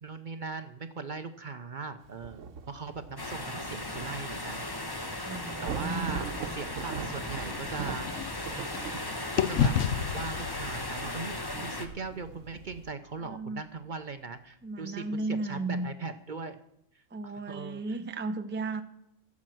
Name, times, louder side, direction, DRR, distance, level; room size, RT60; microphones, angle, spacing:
voice 1, 0.0-4.7 5.1-5.3 5.6-8.1 9.5-9.7 10.1-16.6 16.9-17.8, right 4 dB, 45° right, 9 dB, 0.7 m, -39 dB
Thunder / Rain, 2.0-12.9, right 6 dB, 90° right, 1.2 m, -43 dB
sound 1, 3.2-11.9, left 2 dB, 20° left, 1.0 m, -37 dB
voice 2, 5.2-6.2 13.2-13.6 14.6-15.9 17.1-18.8, right 3 dB, 10° right, 8 dB, 0.5 m, -34 dB
sound 2, 6.7-9.0 9.4-13.4, left 8 dB, 75° left, 1.0 m, -33 dB
15.0 x 7.3 x 7.6 m, 0.79 s
omnidirectional pair, 1.3 m